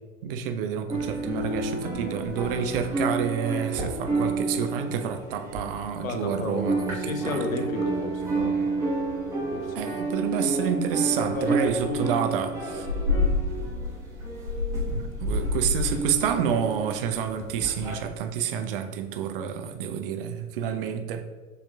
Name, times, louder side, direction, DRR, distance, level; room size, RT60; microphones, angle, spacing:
voice 1, 0.2-7.0 7.3-7.4 9.8-12.8 14.9-21.3, right 8 dB, 45° right, 7 dB, 0.4 m, -29 dB
sound 1, 0.9-6.2 6.5-17.9, right 1 dB, 5° right, 1.1 m, -29 dB
voice 2, 6.0-8.6 9.5-9.9 11.2-13.0, left 3 dB, 80° left, 6 dB, 0.7 m, -33 dB
6.8 x 2.9 x 2.3 m, 1.4 s
figure-of-eight pair, 90°, 41 cm